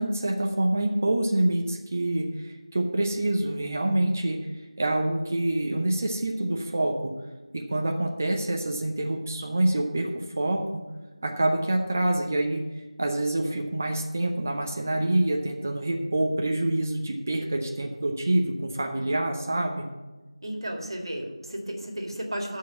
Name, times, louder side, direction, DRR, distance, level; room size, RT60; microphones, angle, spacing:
voice 1, 0.0-4.4 4.8-7.2 7.5-10.6 11.2-12.6 13.0-19.9, right 1 dB, 25° right, 2 dB, 0.7 m, -26 dB
voice 2, 20.4-22.6, right 1 dB, 50° right, 2 dB, 2.0 m, -33 dB
12.5 x 4.7 x 7.7 m, 1.2 s
figure-of-eight pair, 170°, 3 cm